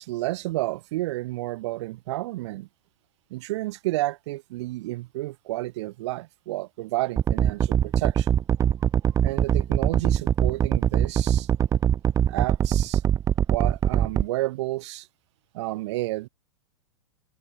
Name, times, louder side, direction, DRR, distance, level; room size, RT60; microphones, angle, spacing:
voice 1, 0.0-2.7 3.3-8.4 9.1-11.5 12.3-13.0 13.5-15.1 15.5-16.3, right 18 dB, 60° right, 1.5 m, -31 dB
sound 1, 7.2-14.2, right 9 dB, 20° right, 0.4 m, -22 dB
hypercardioid pair, 110°, 16 cm